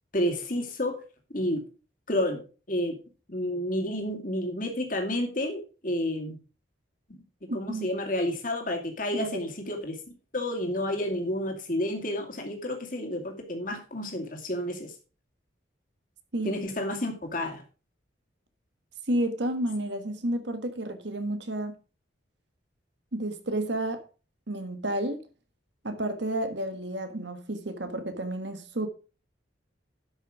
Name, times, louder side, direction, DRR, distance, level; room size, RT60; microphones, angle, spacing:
voice 1, 0.1-1.0 1.3-1.6 2.1-2.4 2.7-3.0 3.3-6.4 7.1-7.2 7.5-10.0 10.3-14.9 16.4-17.6, left 1 dB, 45° left, 2.5 m, -30 dB
voice 2, 7.5-7.9 9.1-9.3 16.3-16.5 19.1-21.7 23.1-24.0 24.5-25.2 25.8-28.9, right 1 dB, 65° right, 1.6 m, -31 dB
11.5 x 6.4 x 4.9 m
head